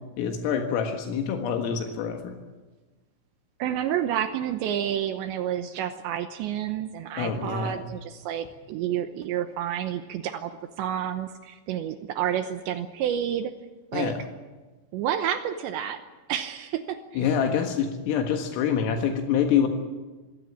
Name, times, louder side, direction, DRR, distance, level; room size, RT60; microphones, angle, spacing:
voice 1, 0.2-2.3 7.2-7.8 13.9-14.2 17.2-19.7, left 7 dB, 80° left, 4 dB, 4.2 m, -26 dB
voice 2, 3.6-13.5 13.9-14.1 14.9-16.0 16.3-17.3, right 10 dB, 80° right, 8 dB, 2.8 m, -29 dB
25.0 x 16.5 x 8.7 m, 1.2 s
omnidirectional pair, 6.0 m